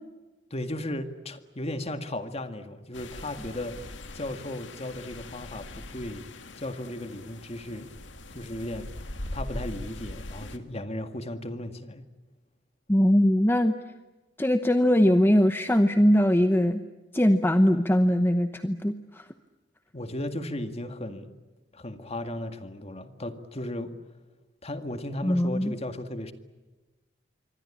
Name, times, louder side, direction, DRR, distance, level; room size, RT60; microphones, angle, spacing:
voice 1, 0.5-6.3 6.6-7.9 8.3-8.9 9.3-12.1 19.9-21.3 21.7-23.9 24.6-26.3, left 1 dB, 35° left, 8 dB, 2.0 m, -35 dB
sound 1, 2.9-10.6, left 1 dB, 90° left, 2.1 m, -41 dB
voice 2, 12.9-13.8 14.4-16.8 17.1-19.2 25.2-25.7, equal, 10° left, 8 dB, 0.9 m, -21 dB
26.5 x 24.0 x 8.6 m, 1.2 s
head